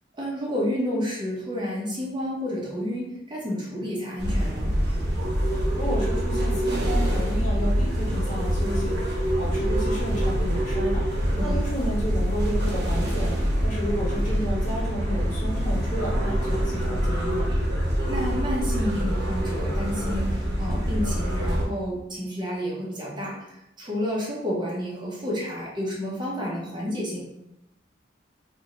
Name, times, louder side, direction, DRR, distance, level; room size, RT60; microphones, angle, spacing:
voice 1, 0.1-4.7 11.3-11.6 18.1-27.2, equal, 25° right, -5 dB, 0.8 m, -30 dB
sound 1, 4.2-21.6, equal, 65° right, 1.0 m, -25 dB
voice 2, 5.5-17.4, equal, 45° left, -6 dB, 1.4 m, -32 dB
2.7 x 2.6 x 4.2 m, 0.85 s
head